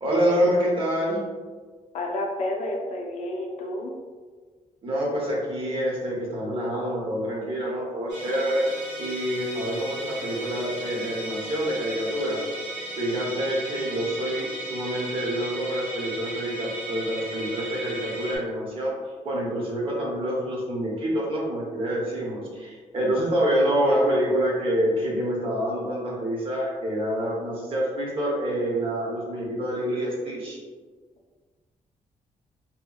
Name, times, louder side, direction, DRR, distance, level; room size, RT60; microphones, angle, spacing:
voice 1, 0.0-1.2 4.8-8.7 9.0-12.4 13.0-18.9 19.2-30.6, equal, 45° right, -3 dB, 0.8 m, -26 dB
voice 2, 1.9-3.9, left 1 dB, 65° left, 1 dB, 0.4 m, -30 dB
Musical instrument, 8.1-18.4, right 1 dB, 75° right, 0.9 m, -36 dB
2.9 x 2.7 x 2.2 m, 1.5 s
wide cardioid pair, 160°, 13 cm